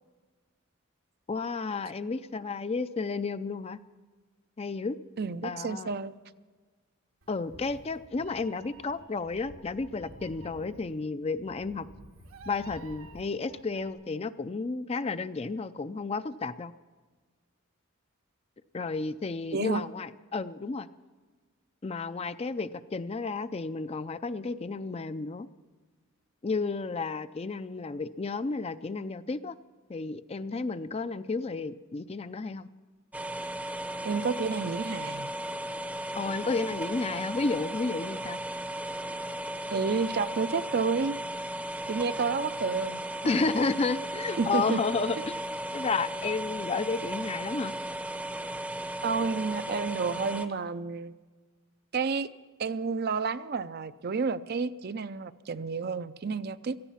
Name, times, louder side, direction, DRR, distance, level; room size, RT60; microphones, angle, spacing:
voice 1, 1.3-3.8 4.6-5.0 5.4-5.9 7.3-11.9 12.5-16.7 18.7-20.9 21.8-25.5 26.4-29.6 29.9-32.7 36.1-38.4 43.2-45.4 45.7-47.7, left 4 dB, 30° left, 13 dB, 0.4 m, -32 dB
voice 2, 5.2-6.2 19.5-19.8 34.0-35.3 39.7-41.2 41.9-43.4 44.4-44.8 49.0-51.1 51.9-52.3 52.6-56.8, right 4 dB, 50° right, 13 dB, 0.5 m, -30 dB
Meow, 7.2-13.9, right 1 dB, 85° right, 1.5 m, -51 dB
sound 1, 33.1-50.5, right 1 dB, 5° right, 0.7 m, -36 dB
17.5 x 14.5 x 5.7 m, 1.4 s
head